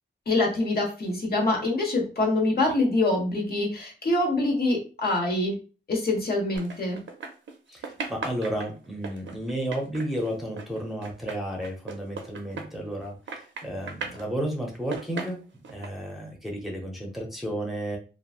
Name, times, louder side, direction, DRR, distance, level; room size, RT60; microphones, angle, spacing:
voice 1, 0.3-5.6 5.9-7.0, left 2 dB, 55° left, -1 dB, 1.1 m, -25 dB
sound 1, 6.5-7.6 7.8-13.0 13.3-14.3 14.7-15.9, right 4 dB, 85° right, 0.6 m, -37 dB
voice 2, 7.7-15.4 15.7-18.0, right 1 dB, ahead, -1 dB, 0.7 m, -32 dB
3.0 x 2.5 x 2.4 m, 0.34 s
wide cardioid pair, 105°, 19 cm